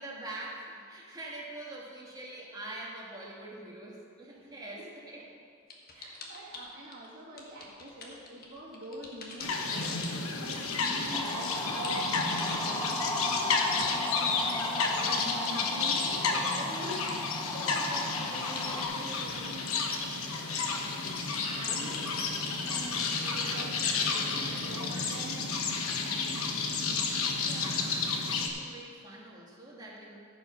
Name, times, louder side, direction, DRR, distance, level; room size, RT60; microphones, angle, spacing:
voice 1, 0.0-5.3 23.4-25.1 27.5-30.2, right 2 dB, 20° right, -4 dB, 1.9 m, -45 dB
sound 1, 5.7-7.1 7.4-23.3, left 3 dB, 45° left, 1.4 m, -45 dB
voice 2, 5.9-9.9 10.4-19.7 20.3-20.6 21.4-25.4, right 1 dB, 45° right, -7 dB, 2.7 m, -44 dB
sound 2, 9.4-28.5, left 4 dB, 80° left, 1.1 m, -31 dB
sound 3, 11.1-18.8, left 1 dB, 15° left, 1.0 m, -36 dB
14.5 x 5.5 x 5.6 m, 2.2 s
head